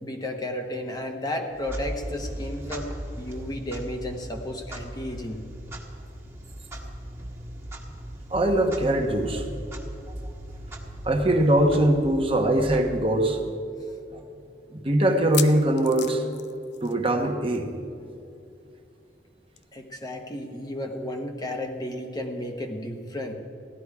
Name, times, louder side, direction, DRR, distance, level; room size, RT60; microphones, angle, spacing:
voice 1, 0.0-5.4 19.7-23.3, left 1 dB, 25° left, 3 dB, 1.0 m, -33 dB
Clock, 1.5-13.5, right 1 dB, 15° right, 1.5 m, -38 dB
voice 2, 8.3-9.4 11.0-13.4 14.7-16.2 16.8-17.7, right 1 dB, 30° right, 3 dB, 1.1 m, -22 dB
sound 1, 12.5-12.6 12.9-13.0 13.6-13.7 15.1-17.3 17.5-17.7 18.0-18.1 19.6-19.7, left 11 dB, 75° left, 0.6 m, -36 dB
16.0 x 11.5 x 4.8 m, 2.6 s
head